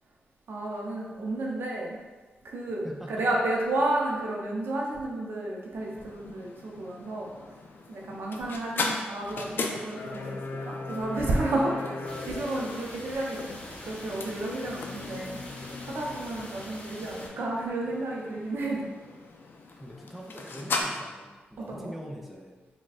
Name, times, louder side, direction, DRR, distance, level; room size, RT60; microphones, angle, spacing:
voice 1, 0.5-2.0 2.4-7.6 7.9-13.4 13.8-15.4 15.8-18.8 21.6-21.9, right 2 dB, 70° right, -2 dB, 0.6 m, -31 dB
voice 2, 2.8-3.3 3.7-3.8 8.1-8.8 12.3-12.7 19.8-22.7, equal, 5° right, -1 dB, 0.4 m, -44 dB
sound 1, 5.8-20.8, left 3 dB, 65° left, 0.3 m, -38 dB
sound 2, 12.0-17.3, left 1 dB, 35° left, 0.7 m, -44 dB
4.0 x 2.2 x 2.3 m, 1.3 s
cardioid pair, 70°, 4 cm